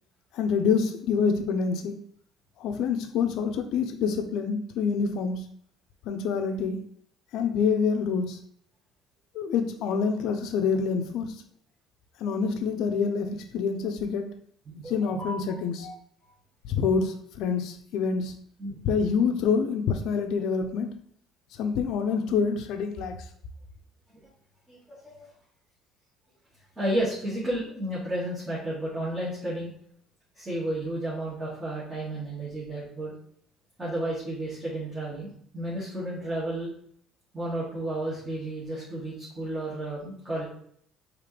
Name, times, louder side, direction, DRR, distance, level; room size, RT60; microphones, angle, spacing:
voice 1, 0.3-1.9 2.6-5.5 6.1-6.8 7.3-8.4 9.3-11.4 12.2-14.3 14.9-15.9 16.7-18.3 18.9-20.9 21.6-23.2, left 5 dB, 70° left, 7 dB, 0.6 m, -26 dB
voice 2, 14.7-15.4 15.8-15.9 16.2-16.3 18.6-18.8 24.1-24.2 24.7-25.3 26.8-29.7 30.3-33.1 33.8-36.7 37.3-40.4, right 1 dB, 15° right, -9 dB, 2.1 m, -32 dB
5.0 x 3.2 x 3.4 m, 0.64 s
cardioid pair, 115°, 0 cm